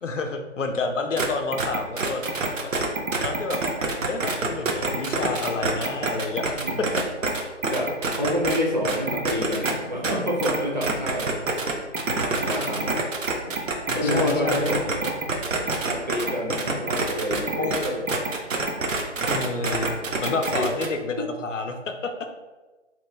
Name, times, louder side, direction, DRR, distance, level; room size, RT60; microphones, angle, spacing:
voice 1, 0.0-2.3 3.2-3.6 4.1-7.0 13.9-14.7 17.6-17.8 19.3-22.3, left 3 dB, 75° left, 6 dB, 0.5 m, -29 dB
sound 1, 1.2-1.3 1.5-8.6 8.9-9.7 10.0-20.9, right 3 dB, 90° right, 0.7 m, -26 dB
voice 2, 6.6-6.9 7.7-11.4 12.3-13.1 13.9-15.2 15.5-18.1 20.0-20.7, equal, 40° right, -1 dB, 0.4 m, -28 dB
3.0 x 2.2 x 3.2 m, 1.2 s
figure-of-eight pair, 155°, 37 cm